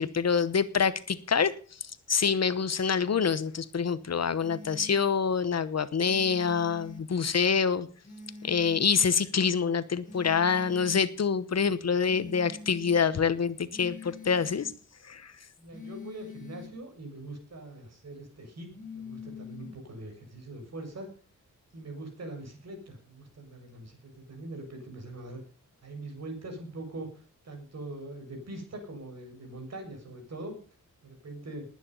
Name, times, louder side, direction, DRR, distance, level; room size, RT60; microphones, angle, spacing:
voice 1, 0.0-1.5 2.1-7.9 8.4-14.7 15.1-15.3, left 6 dB, 55° left, 15 dB, 1.0 m, -26 dB
sound 1, 4.4-5.0 6.0-7.0 8.0-9.0 10.0-11.0 12.0-13.0 13.7-14.7 15.7-16.7 18.7-19.8, left 4 dB, 25° left, 3.2 m, -45 dB
voice 2, 15.6-21.1 21.7-25.4 25.8-30.6 31.0-31.7, right 2 dB, 55° right, 4 dB, 6.8 m, -42 dB
20.0 x 9.8 x 5.6 m, 0.41 s
wide cardioid pair, 140°, 32 cm